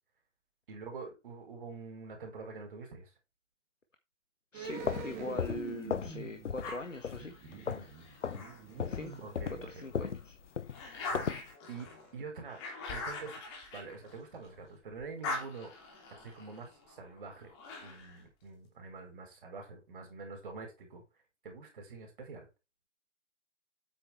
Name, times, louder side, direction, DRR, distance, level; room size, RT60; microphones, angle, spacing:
voice 1, 0.7-3.1 7.6-7.9 9.2-9.9 11.1-12.6 12.9-15.7 16.2-17.5 17.8-21.0 21.4-22.5, right 4 dB, 45° right, 4.8 m, -46 dB
voice 2, 4.5-7.3 8.8-9.2 9.5-10.4, left 2 dB, 90° left, 1.6 m, -42 dB
sound 1, 4.5-10.0 10.2-10.3, right 5 dB, 20° right, 2.5 m, -45 dB
sound 2, 4.6-6.2 6.4-6.8 7.0-7.9 8.2-8.4 8.8-11.5, left 7 dB, 75° left, 0.7 m, -36 dB
sound 3, 6.6-9.3 9.8-14.6 14.9-18.2, left 3 dB, 20° left, 3.0 m, -43 dB
8.8 x 7.1 x 4.5 m
figure-of-eight pair, 145°, 37 cm